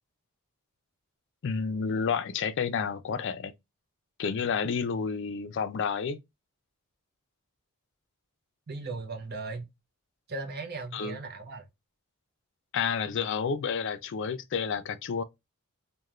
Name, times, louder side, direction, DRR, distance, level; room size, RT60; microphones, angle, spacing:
voice 1, 1.4-3.5 4.2-6.2 10.9-11.2 12.7-15.2, left 6 dB, 55° left, 0.4 m, -30 dB
voice 2, 8.7-9.7 10.3-11.6, right 3 dB, 45° right, 0.7 m, -37 dB
3.0 x 2.2 x 2.3 m
head